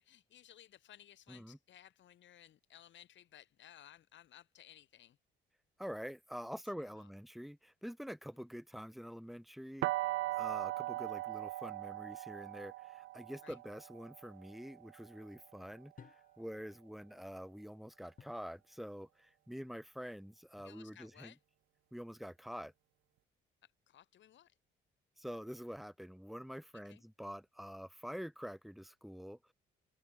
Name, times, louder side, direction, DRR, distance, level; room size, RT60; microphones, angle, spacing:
voice 1, 0.0-5.2 6.8-7.1 13.4-13.6 20.6-21.4 23.6-24.6 26.7-27.0, left 11 dB, 70° left, 2.5 m, -59 dB
voice 2, 5.8-9.9 10.3-21.3 21.9-22.7 25.2-29.5, equal, ahead, 2.6 m, -46 dB
sound 1, 9.8-15.7, right 17 dB, 90° right, 0.7 m, -40 dB
sound 2, 13.5-13.8 16.0-16.6 18.2-18.5 20.6-21.1, left 6 dB, 45° left, 2.6 m, -60 dB
open air
cardioid pair, 90°, 20 cm